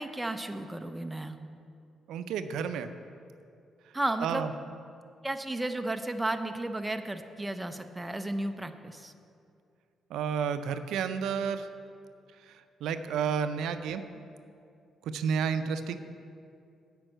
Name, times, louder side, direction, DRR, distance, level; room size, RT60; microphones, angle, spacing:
voice 1, 0.0-1.4 3.9-4.5 5.2-9.1, right 1 dB, 10° right, 7 dB, 0.5 m, -33 dB
voice 2, 2.1-2.9 4.2-4.5 10.1-11.7 12.4-14.0 15.0-16.0, right 7 dB, 90° right, 10 dB, 0.4 m, -31 dB
9.0 x 5.3 x 7.7 m, 2.5 s
cardioid pair, 100°, 0 cm